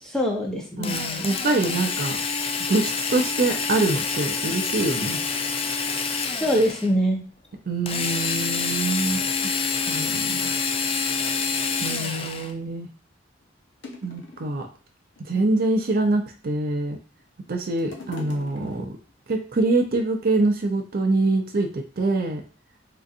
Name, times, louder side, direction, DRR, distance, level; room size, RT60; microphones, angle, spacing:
voice 1, 0.0-1.0 6.2-7.2, equal, 5° left, -1 dB, 0.7 m, -24 dB
Drill, 0.8-6.9 7.9-12.5, left 5 dB, 30° left, 0.3 m, -27 dB
voice 2, 0.8-2.2 2.7-5.2 7.7-9.2 9.9-10.5 11.8-12.9 14.0-14.7 15.2-17.0 17.5-18.9 19.3-22.4, right 2 dB, 50° right, 4 dB, 0.5 m, -24 dB
empty-bottles, 12.6-12.7 13.4-13.5 13.8-14.7 15.2-15.9 16.6-17.2 17.5-19.1 19.9-20.0, left 2 dB, 70° left, 0.7 m, -42 dB
3.8 x 2.5 x 2.5 m, 0.38 s
head